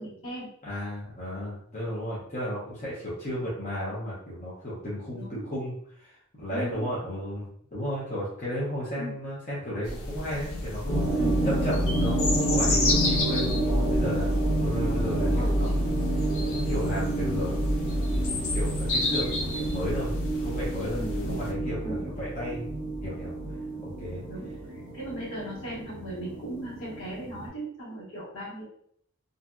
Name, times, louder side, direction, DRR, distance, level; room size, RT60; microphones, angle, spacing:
voice 1, 0.0-0.5 5.1-5.4 6.5-6.9 9.0-9.2 11.2-11.6 15.2-15.6 20.9-22.1 23.7-23.8 24.3-28.6, right 1 dB, 70° left, -7 dB, 1.4 m, -38 dB
voice 2, 0.6-5.7 6.0-11.2 11.6-15.9 16.4-17.6 18.1-20.1 20.4-21.0 21.3-22.7 23.0-23.3 23.8-24.2, equal, 40° left, -8 dB, 0.8 m, -34 dB
sound 1, 9.8-21.5, left 2 dB, 90° left, 0.5 m, -32 dB
sound 2, 10.9-27.5, right 1 dB, 20° left, 1.3 m, -28 dB
2.6 x 2.5 x 2.2 m, 0.65 s
head